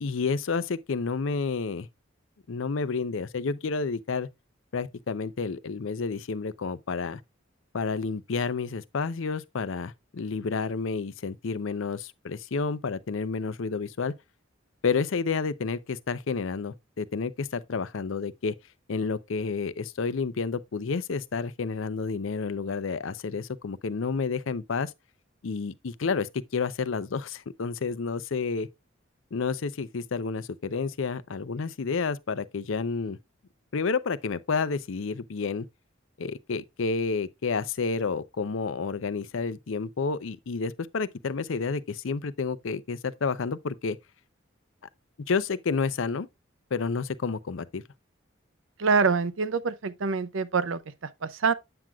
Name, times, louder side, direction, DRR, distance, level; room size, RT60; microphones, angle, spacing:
voice 1, 0.0-1.9 2.5-4.3 4.7-7.2 7.7-14.2 14.8-18.5 18.9-24.9 25.4-28.7 29.3-33.2 33.7-35.7 36.2-44.0 45.3-46.3 46.7-47.8, left 4 dB, 75° left, 0.5 m, -30 dB
voice 2, 48.8-51.5, right 4 dB, 75° right, 0.6 m, -26 dB
8.8 x 7.5 x 2.3 m
head